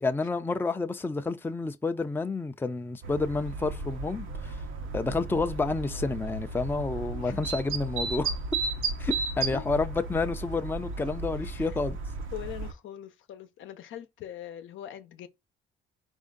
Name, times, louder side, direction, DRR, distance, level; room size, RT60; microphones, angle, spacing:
voice 1, 0.0-4.6 4.9-8.4 9.0-12.0, left 3 dB, 10° left, 0.5 m, -30 dB
sound 1, 3.0-12.7, right 3 dB, 90° right, 0.9 m, -34 dB
voice 2, 11.4-11.8 12.3-15.3, left 11 dB, 75° left, 0.8 m, -42 dB
4.3 x 2.7 x 3.7 m
cardioid pair, 90°, 20 cm